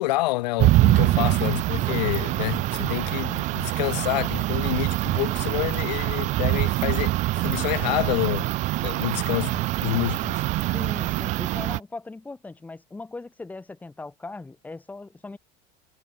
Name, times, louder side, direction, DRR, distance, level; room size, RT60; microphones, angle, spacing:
voice 1, 0.0-8.5 8.8-10.4, left 19 dB, 90° left, 3.1 m, -28 dB
sound 1, 0.6-11.8, right 18 dB, 35° right, 0.6 m, -24 dB
voice 2, 10.7-15.4, left 3 dB, 10° left, 5.1 m, -39 dB
cardioid pair, 165°, 21 cm